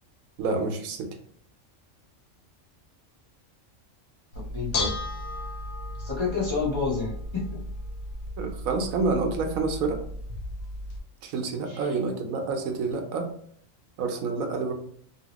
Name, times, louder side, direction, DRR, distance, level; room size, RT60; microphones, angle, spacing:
voice 1, 0.4-1.1 8.4-10.0 11.2-13.3 14.0-14.7, right 4 dB, 90° right, 4 dB, 1.1 m, -28 dB
Bell / Dishes pots and pans, 4.3-11.0, left 2 dB, 65° left, 0.8 m, -35 dB
voice 2, 4.3-5.0 6.0-7.6 11.7-11.8, left 4 dB, 30° left, -6 dB, 0.6 m, -29 dB
2.8 x 2.7 x 2.9 m, 0.62 s
omnidirectional pair, 1.4 m